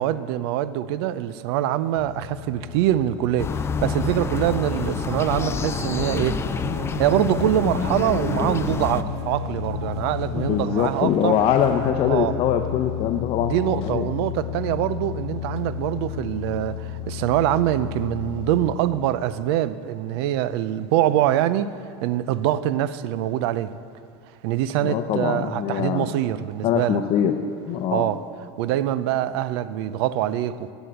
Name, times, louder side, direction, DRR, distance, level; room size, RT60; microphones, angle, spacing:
voice 1, 0.0-6.4 7.0-11.4 12.1-12.3 13.4-21.8 22.0-23.7 24.4-27.0 27.9-28.2 28.6-30.7, right 12 dB, 70° right, 0.5 m, -24 dB
sound 1, 2.0-11.0 11.4-18.8, left 10 dB, 80° left, 0.5 m, -34 dB
sound 2, 3.4-9.0, left 6 dB, 20° left, 0.4 m, -27 dB
sound 3, 3.7-11.9, right 5 dB, 90° right, 1.2 m, -37 dB
voice 2, 10.4-14.1 24.8-26.1 26.6-27.3 27.7-28.0, left 9 dB, 45° left, 0.7 m, -23 dB
11.0 x 8.2 x 8.1 m
supercardioid pair, 125°, 14 cm